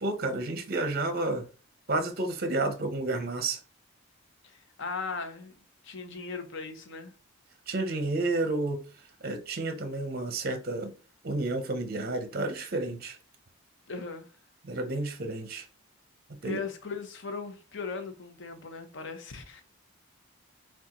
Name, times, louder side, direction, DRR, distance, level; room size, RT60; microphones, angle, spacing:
voice 1, 0.0-1.5 1.9-3.6 7.7-8.8 9.2-10.9 11.2-13.2 14.6-15.7 16.4-16.6, right 2 dB, 45° right, 0.6 m, -30 dB
voice 2, 4.4-5.5 5.8-7.1 13.9-14.3 16.4-19.6, left 4 dB, 55° left, 0.7 m, -38 dB
6.0 x 2.3 x 2.9 m
head